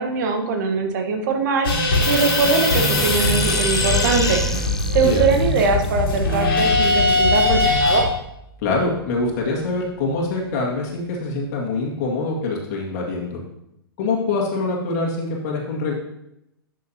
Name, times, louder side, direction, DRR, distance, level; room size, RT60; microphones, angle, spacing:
voice 1, 0.0-1.7 2.1-4.4 4.9-8.1, right 4 dB, 50° right, 4 dB, 1.3 m, -21 dB
sound 1, 1.6-8.0, left 2 dB, 65° left, 2.1 m, -20 dB
sound 2, 2.0-8.9, left 1 dB, 5° left, 0.4 m, -29 dB
voice 2, 5.0-5.3 8.6-13.4 14.0-15.9, left 3 dB, 40° left, -1 dB, 2.0 m, -24 dB
10.5 x 6.6 x 2.8 m, 0.83 s
figure-of-eight pair, 115°, 13 cm